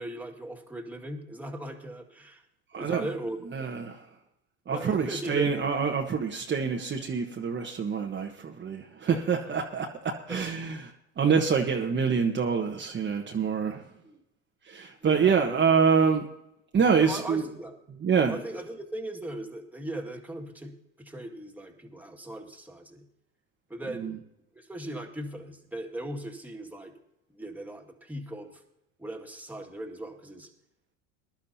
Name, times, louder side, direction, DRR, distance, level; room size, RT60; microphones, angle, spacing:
voice 1, 0.0-2.4 2.8-3.7 4.7-5.6 9.1-9.6 10.3-10.5 14.0-14.2 15.0-15.8 17.0-17.7 18.3-23.0 23.7-24.2 24.6-26.9 27.3-28.6 29.0-30.5, right 1 dB, 5° right, 2 dB, 2.0 m, -39 dB
voice 2, 2.7-3.1 3.5-4.0 4.7-10.9 11.2-13.8 14.7-16.3 16.7-17.4 18.0-18.4 24.0-24.1, right 6 dB, 25° right, 1 dB, 1.3 m, -26 dB
20.5 x 11.5 x 2.8 m, 0.84 s
hypercardioid pair, 90°, 40 cm